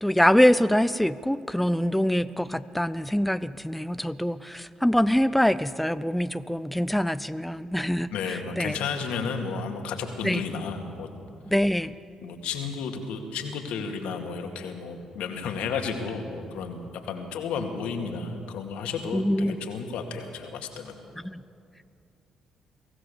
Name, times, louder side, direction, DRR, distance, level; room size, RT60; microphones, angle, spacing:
voice 1, 0.0-8.8 10.2-10.4 11.5-11.9 19.1-19.6 21.2-21.4, equal, 5° left, 14 dB, 0.6 m, -24 dB
voice 2, 8.1-11.1 12.2-20.9, left 5 dB, 70° left, 4 dB, 2.2 m, -32 dB
23.5 x 16.5 x 6.9 m, 2.5 s
hypercardioid pair, 45°, 2 cm